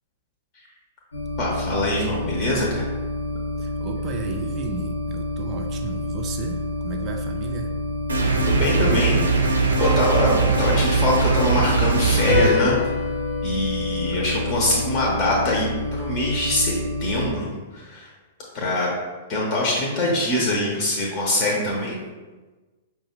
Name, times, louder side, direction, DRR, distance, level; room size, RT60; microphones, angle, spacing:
sound 1, 1.1-17.3, left 1 dB, 75° left, 0.6 m, -29 dB
voice 1, 1.4-2.8 8.4-9.3 9.8-12.8 13.4-16.7 17.0-18.1 18.5-18.9 19.3-22.0, left 1 dB, 35° left, -3 dB, 0.8 m, -23 dB
voice 2, 3.6-7.7, right 5 dB, 25° right, 2 dB, 0.4 m, -34 dB
sound 2, 8.1-12.5, right 4 dB, 75° right, 0.6 m, -21 dB
sound 3, 9.8-11.6 12.3-14.9, left 4 dB, 5° right, 0.8 m, -27 dB
5.2 x 2.4 x 3.0 m, 1.3 s
figure-of-eight pair, 105°, 0 cm